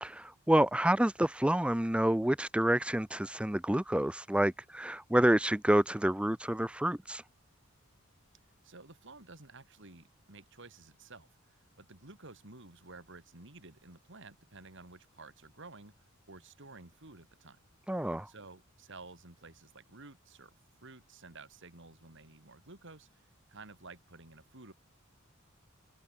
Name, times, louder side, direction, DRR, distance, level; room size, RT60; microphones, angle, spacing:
voice 1, 0.0-7.2 17.9-18.3, right 1 dB, 5° right, 0.6 m, -28 dB
voice 2, 8.6-17.6 18.3-20.5 20.8-24.7, right 3 dB, 60° right, 3.5 m, -53 dB
open air
head